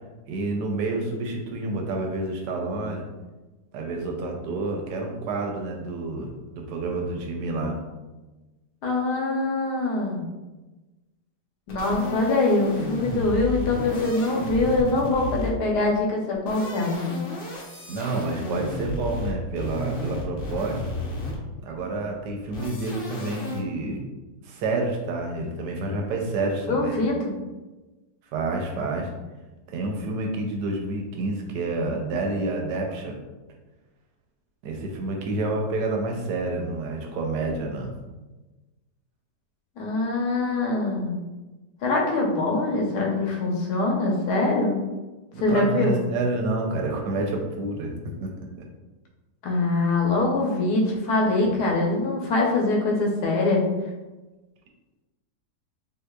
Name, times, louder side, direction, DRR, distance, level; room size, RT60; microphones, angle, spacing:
voice 1, 0.3-3.1 3.7-7.8 17.9-20.8 21.6-24.0 24.4-27.0 28.3-29.1 29.7-33.2 34.6-37.9 45.3-47.9 48.2-48.3 48.6-48.7 51.4-51.6, right 2 dB, 85° right, 2 dB, 1.2 m, -29 dB
voice 2, 8.8-10.3 11.7-17.2 26.7-27.3 39.8-41.2 41.8-44.7 45.4-45.9 49.4-53.6, left 2 dB, 75° left, 0 dB, 1.2 m, -23 dB
sound 1, 11.7-15.7 16.3-21.6 22.5-23.6, left 1 dB, 50° left, 0.7 m, -33 dB
3.8 x 2.8 x 2.2 m, 1.1 s
omnidirectional pair, 1.8 m